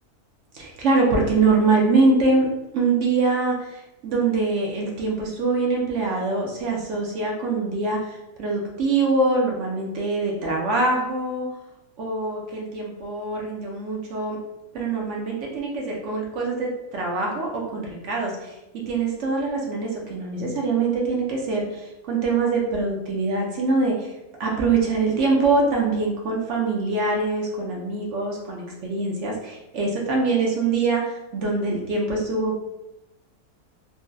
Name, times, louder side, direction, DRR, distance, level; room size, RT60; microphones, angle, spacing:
voice 1, 0.5-2.5 2.7-11.5 12.0-14.4 14.7-18.6 18.9-24.1 24.4-32.6, right 3 dB, 65° right, -1 dB, 0.8 m, -24 dB
3.7 x 2.0 x 2.5 m, 0.94 s
omnidirectional pair, 1.6 m